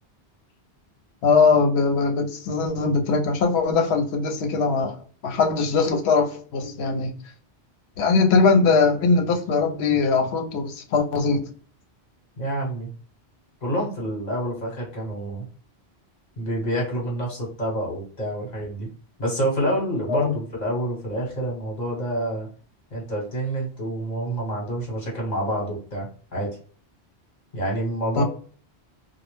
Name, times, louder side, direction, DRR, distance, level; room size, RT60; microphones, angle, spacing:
voice 1, 1.2-7.2 8.0-11.4 20.1-20.3 28.1-28.2, left 4 dB, 75° left, 4 dB, 0.8 m, -21 dB
voice 2, 12.4-12.9 13.6-15.4 16.4-18.9 19.2-22.5 22.9-26.6 27.5-28.2, right 1 dB, 45° left, -3 dB, 1.0 m, -27 dB
2.2 x 2.0 x 3.0 m, 0.42 s
omnidirectional pair, 1.1 m